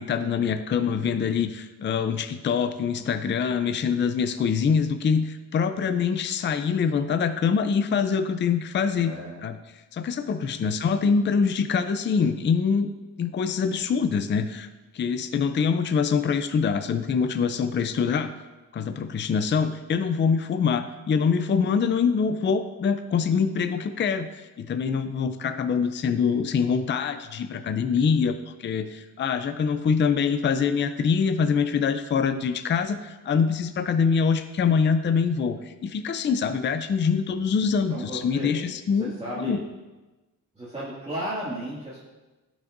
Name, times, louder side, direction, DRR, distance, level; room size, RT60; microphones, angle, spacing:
voice 1, 0.0-9.2 9.4-9.6 9.9-12.9 13.2-14.7 14.9-18.3 18.7-39.6, left 6 dB, 35° left, 10 dB, 0.5 m, -24 dB
voice 2, 9.0-9.4 10.6-10.8 37.9-38.6 38.9-39.6 40.5-42.0, right 1 dB, 20° right, -9 dB, 2.1 m, -34 dB
16.0 x 6.3 x 2.6 m, 1.1 s
cardioid pair, 130°, 35 cm